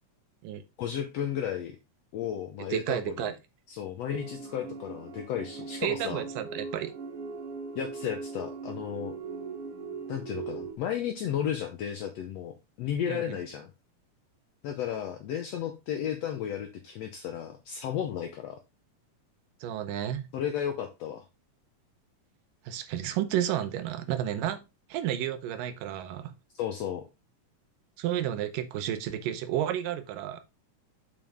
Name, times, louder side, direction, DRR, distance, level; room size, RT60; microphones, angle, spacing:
voice 1, 0.8-1.8 2.1-3.3 3.7-6.3 7.7-9.1 10.1-12.5 12.8-13.7 14.6-18.6 20.3-21.2 26.5-27.0, left 9 dB, 75° left, 1.6 m, -33 dB
voice 2, 2.7-3.3 5.8-6.9 13.1-13.4 19.6-20.3 22.7-24.6 24.9-26.3 28.0-30.4, right 11 dB, 85° right, 2.5 m, -31 dB
sound 1, 4.1-10.8, right 4 dB, 55° right, 2.0 m, -40 dB
7.1 x 5.4 x 3.5 m
omnidirectional pair, 3.7 m